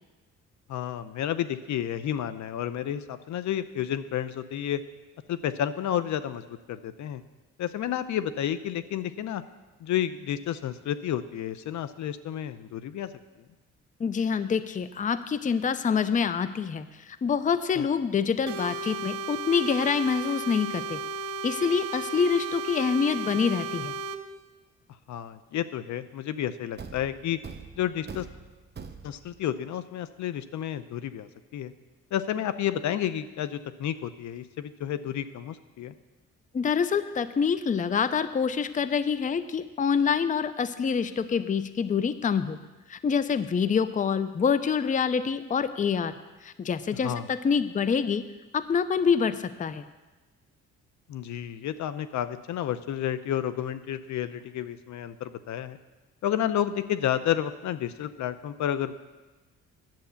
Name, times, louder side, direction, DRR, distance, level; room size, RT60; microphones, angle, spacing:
voice 1, 0.7-4.8 5.3-7.2 7.6-9.4 9.8-13.1 17.8-17.9 25.1-27.4 27.8-28.3 29.0-31.7 32.1-35.9 47.0-47.3 51.1-55.8 56.2-58.9, left 10 dB, 70° left, 13 dB, 0.7 m, -31 dB
voice 2, 14.0-21.0 21.4-24.0 36.5-42.6 42.9-46.1 46.4-48.2 48.5-49.8, left 6 dB, 25° left, 13 dB, 0.5 m, -26 dB
sound 1, 18.5-24.2, right 4 dB, 75° right, 0.9 m, -34 dB
Thump thud, 26.8-29.4, right 5 dB, 35° right, 1.0 m, -43 dB
10.5 x 7.8 x 7.1 m, 1.2 s
cardioid pair, 90°, 30 cm